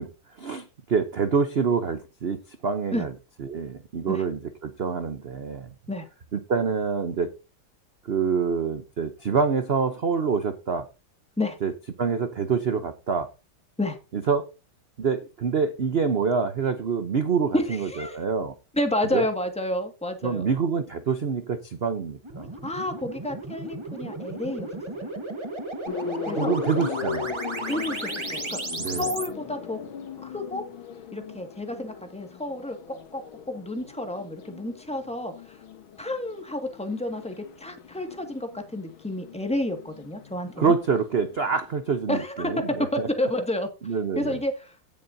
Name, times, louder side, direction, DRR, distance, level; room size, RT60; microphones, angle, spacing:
voice 1, 0.0-3.1 3.4-5.7 6.3-7.3 8.1-10.9 11.6-11.7 12.0-13.3 14.1-14.5 15.0-18.5 19.1-19.3 20.2-22.5 26.4-27.3 28.8-29.1 40.6-43.1 43.8-44.4, right 5 dB, 80° right, 0.5 m, -26 dB
voice 2, 17.5-18.2 18.7-20.5 22.6-25.1 26.2-26.5 27.7-28.6 28.9-29.8 30.2-30.6 31.1-35.6 36.0-40.7 42.1-42.5 42.9-44.7, left 1 dB, 5° left, 1.5 m, -30 dB
sound 1, 22.2-29.3, right 2 dB, 20° right, 1.0 m, -34 dB
sound 2, 25.8-41.7, left 7 dB, 75° left, 2.0 m, -38 dB
17.0 x 7.3 x 2.7 m
omnidirectional pair, 2.2 m